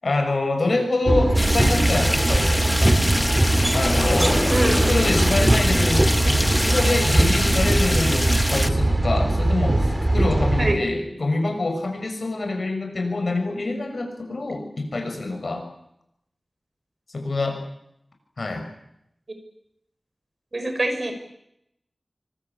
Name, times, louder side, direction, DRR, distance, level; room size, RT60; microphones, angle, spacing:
voice 1, 0.0-3.0 3.7-4.4 4.9-15.7 17.1-17.6 18.4-18.7, left 2 dB, 75° left, 5 dB, 6.9 m, -25 dB
sound 1, 1.1-10.7, right 1 dB, 25° right, 2.8 m, -21 dB
sound 2, 1.3-8.7, equal, 10° left, 1.4 m, -25 dB
sound 3, 2.7-8.8, left 2 dB, 40° left, 2.8 m, -31 dB
voice 2, 4.5-4.9 10.6-10.8 20.5-21.1, right 1 dB, 55° right, 7 dB, 6.0 m, -24 dB
26.5 x 24.5 x 8.6 m, 0.79 s
wide cardioid pair, 65°, 0 cm